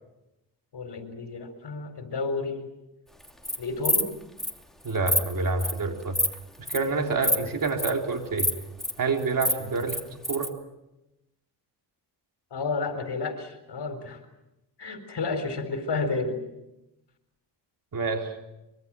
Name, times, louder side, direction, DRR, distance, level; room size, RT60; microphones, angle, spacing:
voice 1, 0.7-2.7 3.6-4.1 12.5-14.2 14.8-16.4, left 3 dB, 65° left, 7 dB, 4.3 m, -31 dB
Insect, 3.2-3.6 3.8-4.1 4.4-4.5 4.8-5.2 5.6-5.8 6.1-6.3 6.7-6.8 7.2-7.4 7.6-7.9 8.4-8.9 9.2-10.5, left 1 dB, ahead, 3.0 m, -25 dB
voice 2, 4.8-6.2 6.6-8.5 9.0-10.5 17.9-18.3, right 3 dB, 50° right, 3 dB, 3.8 m, -28 dB
25.0 x 23.5 x 7.6 m, 0.95 s
cardioid pair, 105°, 43 cm